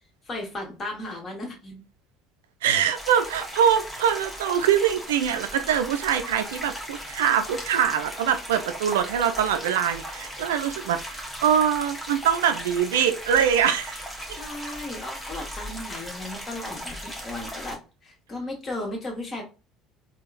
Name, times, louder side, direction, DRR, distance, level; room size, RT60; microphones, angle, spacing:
voice 1, 0.3-1.8 14.2-19.4, left 2 dB, 35° left, 1.5 m, -35 dB
voice 2, 2.6-14.0, right 8 dB, 75° right, 0.3 m, -23 dB
sound 1, 2.9-17.8, equal, 10° left, 1.2 m, -37 dB
3.5 x 2.3 x 2.5 m
figure-of-eight pair, 60°, 0 cm